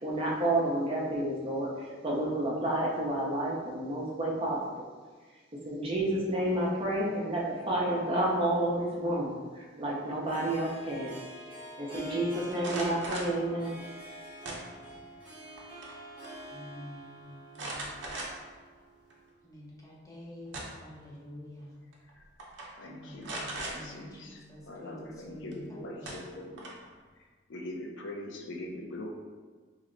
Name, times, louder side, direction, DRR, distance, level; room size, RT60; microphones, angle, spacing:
voice 1, 0.0-4.6 5.7-11.1 11.8-13.7, right 1 dB, 30° right, -4 dB, 0.6 m, -30 dB
Harp, 8.9-19.3, right 1 dB, 5° right, 0.8 m, -47 dB
sound 1, 12.5-13.4 14.4-15.0 15.4-16.0 16.2-16.3 17.5-18.6 19.1-19.2 20.2-20.9 21.9-22.1 22.4-22.7 23.2-23.8 25.5-25.6 26.0-26.9, right 2 dB, 75° right, 0.7 m, -39 dB
voice 2, 16.5-18.0 19.4-21.7 22.8-26.2, left 1 dB, 20° left, -4 dB, 0.6 m, -48 dB
voice 3, 22.7-26.7 27.5-29.1, left 1 dB, 75° left, 1 dB, 0.5 m, -42 dB
3.0 x 2.1 x 3.7 m, 1.4 s
head